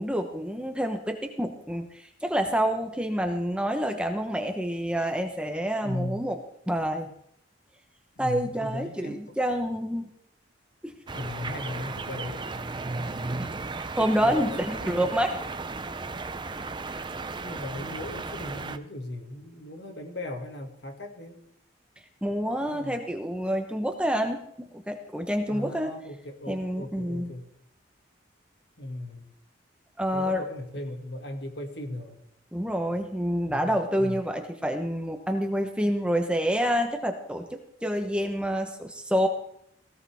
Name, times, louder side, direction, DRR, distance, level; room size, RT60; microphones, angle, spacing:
voice 1, 0.0-6.4 6.7-7.1 8.2-10.1 10.8-10.9 13.4-13.5 13.8-15.3 22.2-25.9 26.5-27.3 30.0-30.4 32.5-39.3, equal, 5° right, 4 dB, 1.0 m, -28 dB
voice 2, 5.8-6.2 8.2-9.2 11.1-12.5 14.2-15.1 17.4-21.4 22.6-23.0 25.5-27.5 28.8-29.3 30.1-32.2 33.4-34.2, left 1 dB, 60° left, 4 dB, 2.2 m, -37 dB
sound 1, 11.1-18.8, right 3 dB, 25° right, 0.6 m, -35 dB
17.5 x 16.5 x 3.6 m, 0.71 s
head